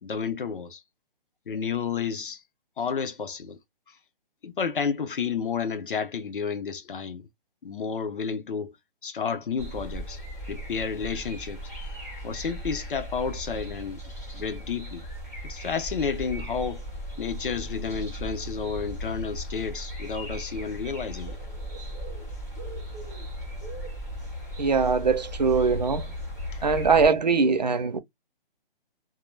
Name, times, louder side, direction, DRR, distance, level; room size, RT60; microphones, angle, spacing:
voice 1, 0.0-0.8 1.5-2.4 2.8-3.6 4.4-7.3 7.6-8.7 9.0-10.2 10.5-11.6 12.2-14.0 14.3-15.0 15.4-16.8 17.2-21.4, left 6 dB, 60° left, 0.7 m, -31 dB
sound 1, 9.6-27.1, equal, 20° left, 0.6 m, -37 dB
voice 2, 24.6-26.0 26.6-28.0, right 5 dB, 50° right, 0.5 m, -22 dB
2.2 x 2.1 x 3.1 m
hypercardioid pair, 180°, 29 cm